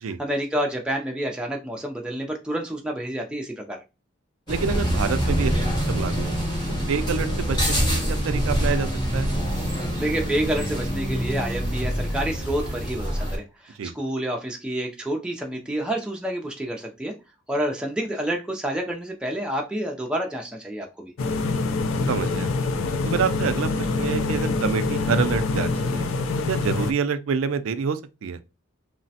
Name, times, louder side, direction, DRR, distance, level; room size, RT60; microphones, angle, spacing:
voice 1, 0.2-3.8 10.0-17.1 17.5-21.1, right 1 dB, 5° right, 0.3 m, -28 dB
sound 1, 4.5-13.4, equal, 20° left, 0.8 m, -25 dB
voice 2, 4.5-6.4 6.9-9.3 13.8-13.9 22.1-22.5 23.1-26.1 26.5-28.4, right 6 dB, 80° right, 0.3 m, -27 dB
sound 2, 21.2-26.9, left 3 dB, 85° left, 0.4 m, -25 dB
3.1 x 2.1 x 2.7 m
head